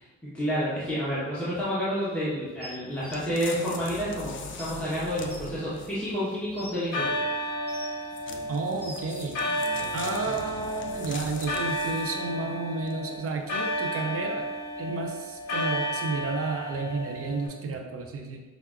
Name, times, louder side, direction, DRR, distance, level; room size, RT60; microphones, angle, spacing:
voice 1, 0.2-7.2, equal, 5° left, -10 dB, 1.1 m, -29 dB
sound 1, 2.6-3.1 4.2-4.3 4.6-4.7 5.3-5.4 6.2-6.8 7.4-8.1 8.5-9.2 10.2-10.3, right 1 dB, 20° right, 1.0 m, -44 dB
sound 2, 3.1-6.1 8.1-12.3 12.9-13.0, left 4 dB, 40° left, 0.4 m, -41 dB
sound 3, 5.4-6.4 6.9-17.5, equal, 60° left, 1.0 m, -32 dB
voice 2, 8.5-9.4 9.9-14.5 14.8-18.4, right 3 dB, 50° right, 3 dB, 0.6 m, -32 dB
5.7 x 2.1 x 2.4 m, 1.2 s
cardioid pair, 90°, 30 cm